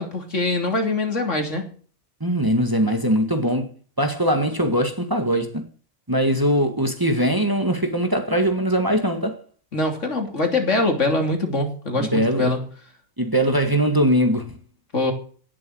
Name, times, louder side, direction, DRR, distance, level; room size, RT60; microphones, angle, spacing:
voice 1, 0.0-1.7 9.7-12.6 14.9-15.1, left 2 dB, 70° left, 3.5 m, -23 dB
voice 2, 2.2-3.7 4.0-5.6 6.1-9.4 12.0-12.5 13.2-14.6, equal, 15° right, 1.9 m, -21 dB
17.5 x 7.3 x 7.9 m
omnidirectional pair, 1.3 m